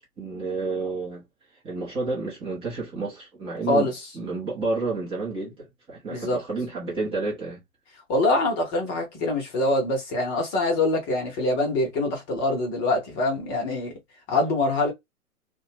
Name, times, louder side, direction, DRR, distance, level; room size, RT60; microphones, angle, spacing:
voice 1, 0.2-1.2 1.6-7.6, right 3 dB, 15° right, 0.8 m, -30 dB
voice 2, 8.1-13.9 14.3-14.9, left 2 dB, 20° left, 0.9 m, -24 dB
2.8 x 2.3 x 2.8 m
figure-of-eight pair, 125°, 44 cm